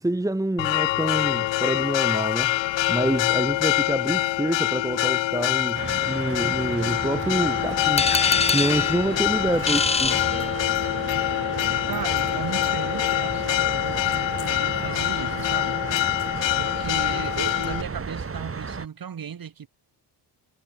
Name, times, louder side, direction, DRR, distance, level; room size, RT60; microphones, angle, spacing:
voice 1, 0.0-2.6 2.9-8.1 8.4-10.2, right 1 dB, 5° right, 1.5 m, -27 dB
Church bell, 0.6-17.8, left 17 dB, 80° left, 0.7 m, -25 dB
sound 1, 5.7-18.9, right 5 dB, 30° right, 5.4 m, -33 dB
sound 2, 8.0-11.0, left 4 dB, 15° left, 0.4 m, -25 dB
voice 2, 11.9-15.8 16.6-19.7, right 7 dB, 50° right, 7.1 m, -35 dB
cardioid pair, 120°, 44 cm